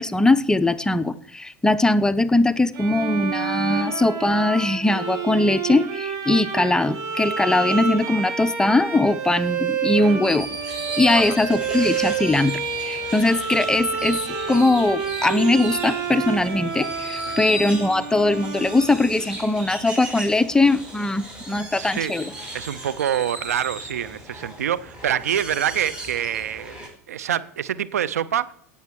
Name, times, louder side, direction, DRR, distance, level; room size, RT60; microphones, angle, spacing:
voice 1, 0.0-10.5 11.0-22.2, left 2 dB, 10° left, 0.6 m, -21 dB
Bowed string instrument, 2.7-19.3, right 6 dB, 45° right, 3.0 m, -29 dB
sound 1, 10.2-26.9, right 1 dB, 10° right, 5.9 m, -36 dB
voice 2, 21.7-22.1 22.5-28.5, right 10 dB, 75° right, 0.6 m, -26 dB
17.0 x 6.9 x 4.7 m
figure-of-eight pair, 80°, 8 cm